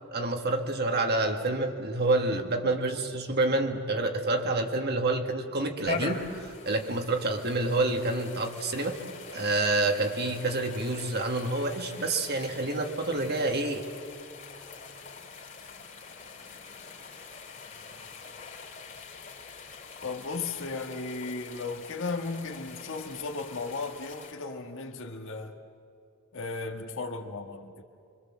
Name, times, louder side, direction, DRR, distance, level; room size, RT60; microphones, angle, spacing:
voice 1, 0.1-9.0 9.3-13.8, right 2 dB, 45° right, 4 dB, 1.9 m, -28 dB
sound 1, 5.8-24.3, left 4 dB, 35° left, 3.0 m, -43 dB
voice 2, 20.0-25.6 26.3-27.8, left 3 dB, 60° left, 3 dB, 1.7 m, -35 dB
26.0 x 24.5 x 7.5 m, 2.4 s
head